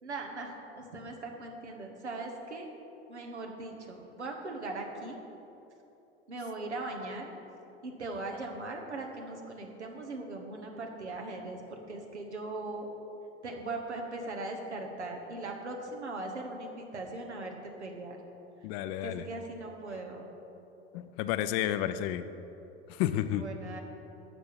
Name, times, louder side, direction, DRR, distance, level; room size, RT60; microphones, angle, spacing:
voice 1, 0.0-2.7 3.1-5.2 6.3-7.3 7.8-12.9 13.4-18.2 19.0-20.2 23.3-23.8, right 2 dB, 90° right, 2 dB, 1.2 m, -39 dB
voice 2, 18.6-19.2 20.9-22.3 22.9-23.4, left 12 dB, 55° left, 12 dB, 0.6 m, -31 dB
12.0 x 7.2 x 4.8 m, 3.0 s
hypercardioid pair, 70°, 33 cm